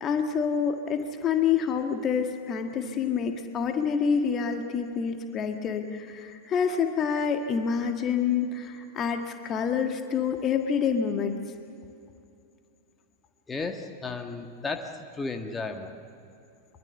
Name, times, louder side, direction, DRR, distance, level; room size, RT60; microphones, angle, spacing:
voice 1, 0.0-11.4, left 6 dB, 30° left, 5 dB, 1.7 m, -27 dB
voice 2, 13.5-16.0, left 3 dB, 15° left, 4 dB, 1.8 m, -34 dB
24.0 x 23.5 x 7.1 m, 2.6 s
figure-of-eight pair, 90°, 0 cm